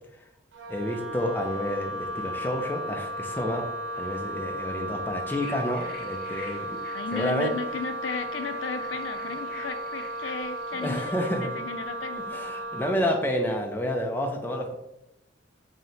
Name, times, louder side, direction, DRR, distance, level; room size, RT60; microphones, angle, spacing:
Wind instrument woodwind instrument, 0.5-13.0, right 1 dB, 90° right, 0.6 m, -35 dB
voice 1, 0.7-3.7 3.9-6.8 7.1-7.5 10.8-11.5 12.3-14.7, equal, 10° left, 2 dB, 0.4 m, -29 dB
sound 1, 5.4-11.1, left 3 dB, 55° left, 1.1 m, -47 dB
voice 2, 6.5-12.6, left 5 dB, 80° left, 8 dB, 0.4 m, -35 dB
3.2 x 2.7 x 4.0 m, 0.90 s
head